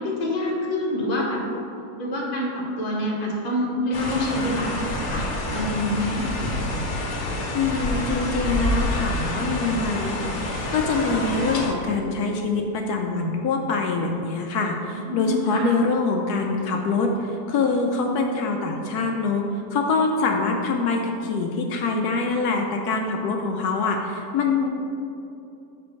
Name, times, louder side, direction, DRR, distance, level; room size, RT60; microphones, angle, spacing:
voice 1, 0.0-1.4 2.0-4.8 5.1-5.3 5.5-6.2 14.9-15.6, left 1 dB, 30° left, -3 dB, 1.1 m, -26 dB
sound 1, 3.9-11.7, left 1 dB, 50° left, 1.1 m, -27 dB
voice 2, 7.5-19.5 19.7-24.7, left 4 dB, 80° left, 2 dB, 1.1 m, -24 dB
5.1 x 4.5 x 6.2 m, 2.8 s
omnidirectional pair, 1.7 m